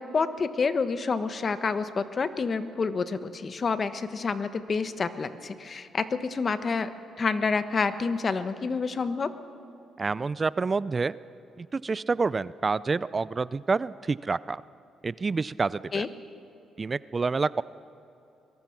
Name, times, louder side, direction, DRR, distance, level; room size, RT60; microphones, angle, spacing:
voice 1, 0.0-6.9 7.2-9.3 15.9-16.1, left 4 dB, 40° left, 11 dB, 1.2 m, -28 dB
voice 2, 10.0-11.1 11.6-14.6 15.0-16.1 16.8-17.6, right 4 dB, 30° right, 18 dB, 0.4 m, -28 dB
23.0 x 21.5 x 6.0 m, 2.9 s
cardioid pair, 90°, 0 cm